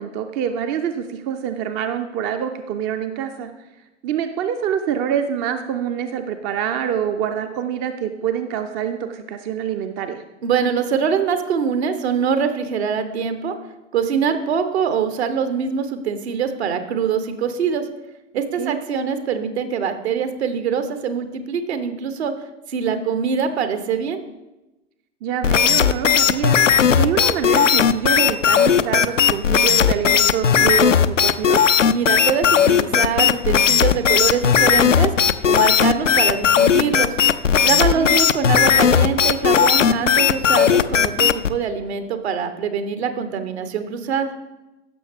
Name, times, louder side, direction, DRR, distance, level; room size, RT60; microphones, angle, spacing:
voice 1, 0.0-3.5 4.0-10.2 18.6-18.8 25.2-26.6 26.9-31.6 37.9-38.1, right 8 dB, 30° right, 7 dB, 0.5 m, -25 dB
voice 2, 10.4-13.5 13.9-17.9 18.3-22.3 22.7-24.2 31.9-35.1 35.4-37.2 37.6-44.3, right 6 dB, 60° right, 9 dB, 1.1 m, -23 dB
sound 1, 25.4-41.5, left 8 dB, 85° left, 0.5 m, -16 dB
15.0 x 6.4 x 3.5 m, 1.0 s
figure-of-eight pair, 90°, 36 cm